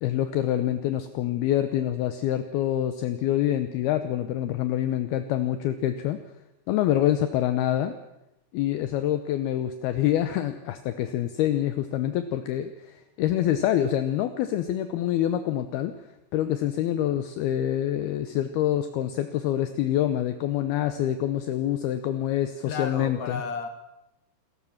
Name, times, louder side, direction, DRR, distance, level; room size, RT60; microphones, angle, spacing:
voice 1, 0.0-6.2 6.7-7.9 8.5-16.0 16.3-23.4, left 12 dB, 75° left, 9 dB, 2.7 m, -26 dB
voice 2, 22.7-23.7, left 5 dB, 55° left, 7 dB, 2.4 m, -32 dB
27.5 x 14.5 x 7.2 m, 0.87 s
omnidirectional pair, 4.9 m